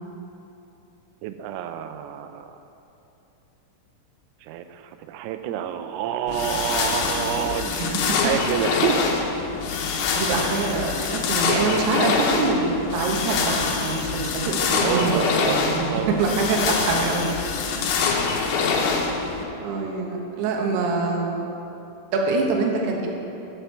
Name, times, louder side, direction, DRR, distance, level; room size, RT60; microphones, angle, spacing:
voice 1, 1.2-2.6 4.4-9.2 14.7-15.6 15.9-16.4, right 9 dB, 90° right, 8 dB, 3.3 m, -28 dB
sound 1, 6.3-19.4, left 5 dB, 75° left, 3.0 m, -25 dB
voice 2, 10.2-17.2 18.4-18.5 19.6-21.4 22.1-23.1, right 3 dB, 70° right, 0 dB, 2.7 m, -25 dB
14.0 x 8.1 x 4.6 m, 2.9 s
omnidirectional pair, 5.9 m